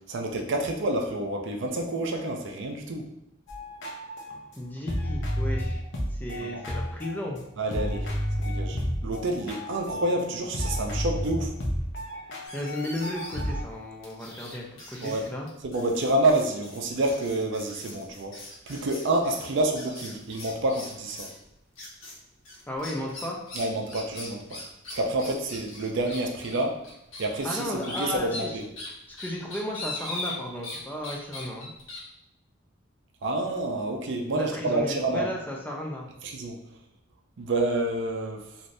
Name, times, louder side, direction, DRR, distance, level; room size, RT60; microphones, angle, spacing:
voice 1, 0.1-3.1 6.5-6.6 7.6-8.1 8.4-11.5 15.0-15.3 15.6-18.4 18.7-21.3 23.5-24.6 24.9-26.8 27.2-28.7 33.2-35.3 36.2-36.6 37.4-38.4, right 2 dB, 65° right, 2 dB, 0.5 m, -28 dB
sound 1, 3.5-7.4 7.7-10.3 10.5-13.6, equal, 65° left, 0.6 m, -31 dB
voice 2, 4.6-5.8 6.1-7.4 12.5-15.5 22.7-23.4 27.4-28.6 29.1-31.7 34.3-36.1, left 1 dB, 10° left, -1 dB, 0.4 m, -34 dB
sound 2, 12.4-13.6 14.0-21.4 21.8-22.2 22.4-30.8 31.0-32.0, left 2 dB, 80° left, 1.1 m, -40 dB
3.2 x 2.6 x 2.5 m, 0.81 s
head